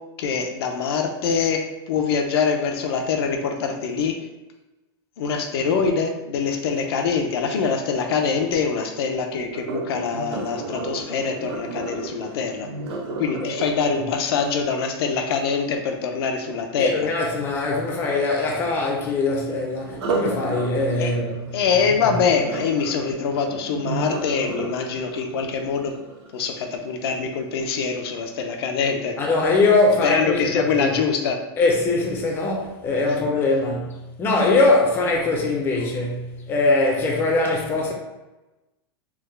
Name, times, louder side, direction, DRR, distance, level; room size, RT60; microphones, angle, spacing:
voice 1, 0.2-4.1 5.2-12.7 13.2-17.1 21.0-21.1 21.5-25.9 26.3-29.1 30.0-31.4, left 5 dB, 70° left, 0.5 m, -24 dB
Sink (filling or washing), 9.5-15.5 19.9-26.9 27.4-27.7 28.2-28.3, right 3 dB, 90° right, 0.8 m, -33 dB
voice 2, 16.8-21.6 22.0-22.2 29.2-31.0 31.6-37.9, left 2 dB, 15° left, 0.4 m, -22 dB
3.4 x 2.1 x 3.2 m
supercardioid pair, 160°, 13 cm